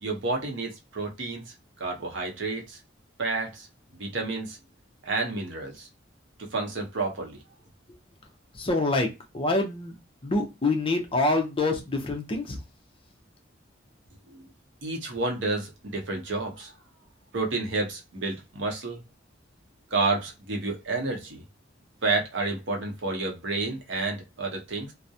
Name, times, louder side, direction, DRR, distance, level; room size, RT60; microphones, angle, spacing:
voice 1, 0.0-1.5 1.8-2.8 3.2-3.7 4.0-4.6 5.0-5.9 6.4-7.4 14.3-14.4 14.8-16.7 17.3-19.0 19.9-21.4 22.0-24.9, right 3 dB, 70° right, 0.7 m, -30 dB
voice 2, 8.5-9.9 10.2-12.6, left 2 dB, 30° left, 0.5 m, -26 dB
2.3 x 2.0 x 2.6 m
head